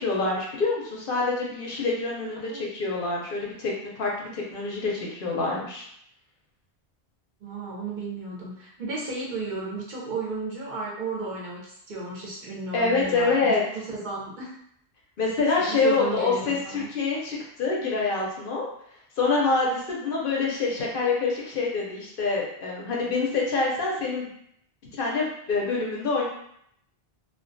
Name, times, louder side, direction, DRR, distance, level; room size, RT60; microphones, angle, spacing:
voice 1, 0.0-5.8 12.7-13.6 15.2-18.7 19.2-24.3 25.0-26.3, left 3 dB, 65° left, -3 dB, 0.7 m, -26 dB
voice 2, 7.4-14.5 15.4-16.9, right 3 dB, 55° right, -4 dB, 0.6 m, -34 dB
2.2 x 2.2 x 2.5 m, 0.72 s
omnidirectional pair, 1.1 m